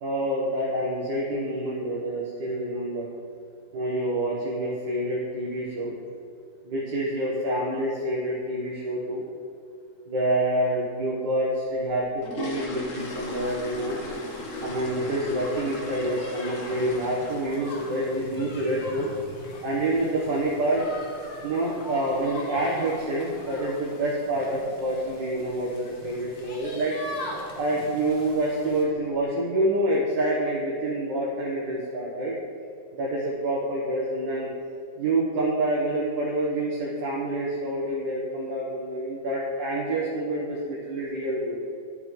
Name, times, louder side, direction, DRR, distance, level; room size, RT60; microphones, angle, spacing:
voice 1, 0.0-3.1 3.7-5.9 6.6-9.2 10.1-14.0 14.6-19.1 19.6-20.8 21.4-26.9 27.5-32.4 33.0-34.5 35.0-41.6, right 1 dB, 80° right, -6 dB, 1.9 m, -27 dB
sound 1, 11.9-17.8 18.0-18.3 18.7-18.8 19.1-19.3 19.7-19.9 20.1-20.2 20.8-20.9 21.2-21.3 21.8-22.2 22.4-22.5 22.9-23.1 23.5-23.6 24.0-24.1 24.7-25.0 25.3-25.7 26.0-26.1 26.6-26.7 27.4-27.6 28.0-28.4 28.9-29.0, left 2 dB, 50° left, 1.2 m, -38 dB
sound 2, 13.0-28.8, left 2 dB, 85° left, 1.9 m, -42 dB
12.0 x 6.0 x 3.1 m, 2.5 s
omnidirectional pair, 1.9 m